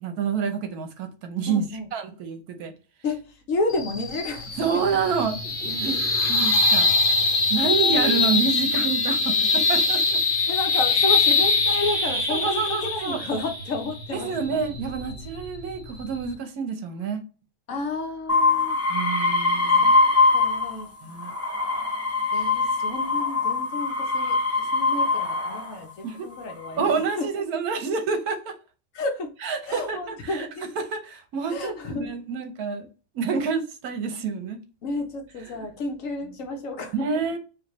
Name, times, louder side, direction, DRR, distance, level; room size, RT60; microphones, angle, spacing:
voice 1, 0.0-1.6 1.9-2.7 4.6-6.9 7.5-10.0 12.3-13.2 14.1-17.2 18.9-19.9 21.0-21.3 26.0-26.3 26.8-28.6 29.4-30.5 30.7-32.9 33.1-34.6 35.6-35.7 36.9-37.4, right 5 dB, 75° right, 1.3 m, -28 dB
voice 2, 1.5-1.9 3.0-3.2 3.5-4.8 6.4-6.5 7.6-8.3 10.5-14.6 17.7-18.8 19.8-19.9 20.3-20.9 22.3-26.9 27.2-27.3 28.9-29.3 29.7-30.7 31.5-32.1 34.8-37.2, left 2 dB, 65° left, 1.2 m, -31 dB
sound 1, 3.7-16.3, left 3 dB, 40° left, 1.1 m, -23 dB
sound 2, 18.3-20.8 21.2-25.7 26.5-27.0, left 3 dB, 15° left, 0.6 m, -22 dB
4.9 x 2.7 x 3.0 m
omnidirectional pair, 1.6 m